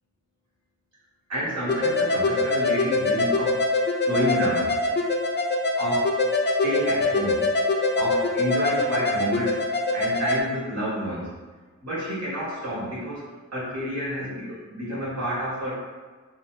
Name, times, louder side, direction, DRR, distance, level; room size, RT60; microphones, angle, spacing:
voice 1, 1.3-3.6 4.0-4.8 5.8-6.2 6.4-7.5 7.9-9.6 9.9-11.3 11.8-15.8, equal, 60° right, -7 dB, 1.5 m, -29 dB
sound 1, 1.7-10.4, left 2 dB, 35° left, 0.5 m, -24 dB
3.3 x 2.1 x 3.6 m, 1.4 s
cardioid pair, 60°, 29 cm